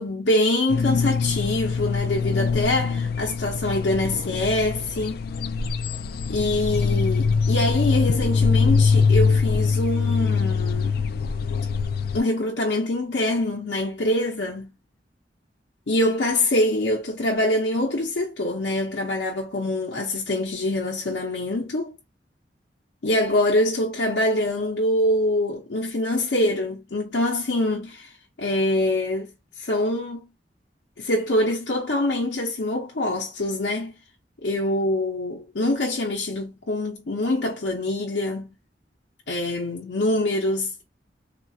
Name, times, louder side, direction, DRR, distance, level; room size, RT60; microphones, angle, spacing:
voice 1, 0.0-5.2 6.3-11.0 12.1-14.7 15.9-21.9 23.0-28.1 28.4-29.3 29.6-30.3 31.0-33.9 34.4-38.5 39.3-40.8, left 1 dB, 85° left, 0.7 m, -24 dB
sound 1, 0.7-12.2, left 5 dB, 60° left, 0.3 m, -23 dB
3.8 x 2.4 x 2.6 m
head